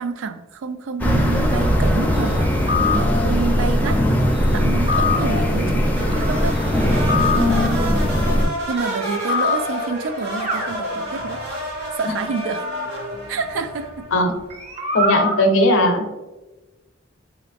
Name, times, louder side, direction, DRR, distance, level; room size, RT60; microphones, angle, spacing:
voice 1, 0.0-2.5 2.9-4.0 4.5-6.6 8.7-11.4 11.9-12.6 13.3-14.1, right 4 dB, 75° right, 9 dB, 0.4 m, -28 dB
sound 1, 1.0-8.5, equal, 10° left, 0.4 m, -19 dB
sound 2, 2.4-3.5 4.6-5.7 6.8-7.9 9.0-10.1 10.4-11.5 12.3-14.1 14.5-15.5, left 3 dB, 35° right, 0.7 m, -26 dB
sound 3, 6.0-14.4, equal, 55° right, 1.1 m, -30 dB
voice 2, 7.3-7.7 14.1-14.3 14.9-16.0, left 1 dB, 75° left, 5 dB, 0.6 m, -18 dB
3.9 x 2.5 x 3.4 m, 1.1 s
head